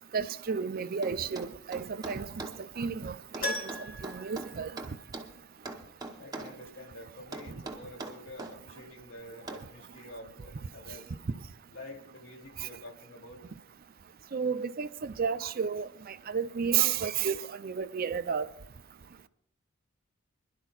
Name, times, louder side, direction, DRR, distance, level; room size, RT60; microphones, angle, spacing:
voice 1, 0.1-2.5 2.8-3.7 4.0-4.7 7.5-7.6 11.3-11.4 12.6-12.7 14.3-18.5, right 7 dB, 45° right, 0.4 m, -32 dB
sound 1, 1.0-2.6 3.3-5.3 5.7-6.6 7.3-8.6 9.5-9.7, right 2 dB, 20° right, 0.9 m, -41 dB
Keyboard (musical), 3.4-5.5 5.7-5.8 8.5-8.6 8.8-8.9, left 2 dB, 40° left, 1.6 m, -38 dB
voice 2, 6.2-11.1 11.7-13.4, left 1 dB, 65° left, 2.7 m, -48 dB
26.0 x 11.5 x 2.4 m
head